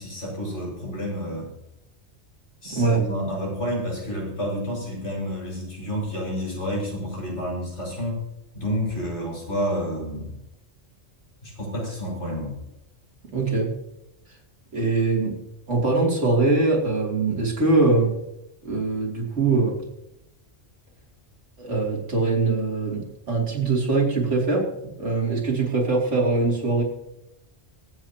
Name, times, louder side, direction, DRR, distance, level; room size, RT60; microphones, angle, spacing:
voice 1, 0.0-1.5 2.6-8.2 8.5-10.3 11.4-12.6, equal, 75° left, -4 dB, 6.0 m, -29 dB
voice 2, 2.6-3.0 13.3-13.7 14.7-15.4 15.7-18.1 18.6-19.7 21.6-24.7 25.0-26.8, right 3 dB, 90° right, -2 dB, 3.4 m, -22 dB
25.5 x 8.7 x 2.9 m, 0.85 s
omnidirectional pair, 1.2 m